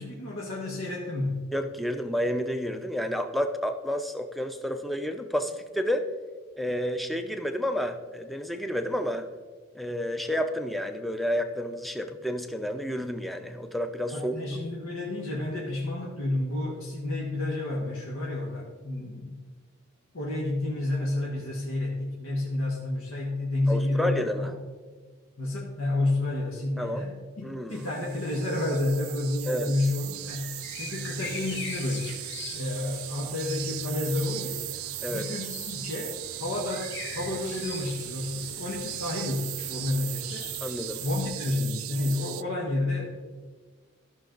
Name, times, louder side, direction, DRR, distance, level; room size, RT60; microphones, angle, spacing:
voice 1, 0.0-1.4 14.1-19.4 20.1-24.5 25.4-32.1 32.5-34.7 35.1-40.5 41.0-43.1, left 2 dB, 85° left, -2 dB, 1.4 m, -30 dB
voice 2, 1.5-6.1 6.6-9.3 9.7-14.3 23.7-24.5 26.8-27.0 27.4-27.9 29.5-29.7 35.0-35.3 40.6-41.0, equal, ahead, 7 dB, 0.5 m, -30 dB
sound 1, 27.7-42.4, right 19 dB, 90° right, 0.3 m, -38 dB
sound 2, 30.1-41.3, left 4 dB, 60° left, 1.0 m, -43 dB
14.0 x 6.1 x 3.9 m, 1.4 s
head